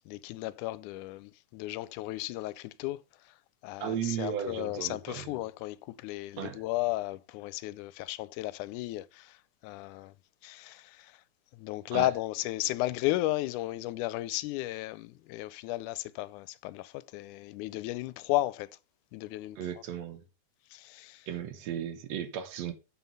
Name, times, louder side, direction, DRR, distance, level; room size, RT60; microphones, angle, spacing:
voice 1, 0.1-3.0 3.6-9.4 9.6-10.1 10.4-11.2 11.5-18.7 19.1-19.6 20.7-21.3, left 17 dB, 90° left, 2.1 m, -34 dB
voice 2, 3.8-5.4 6.4-6.6 11.9-12.1 19.6-20.2 21.3-22.7, right 9 dB, 65° right, 2.0 m, -35 dB
7.5 x 5.7 x 5.5 m
omnidirectional pair, 3.5 m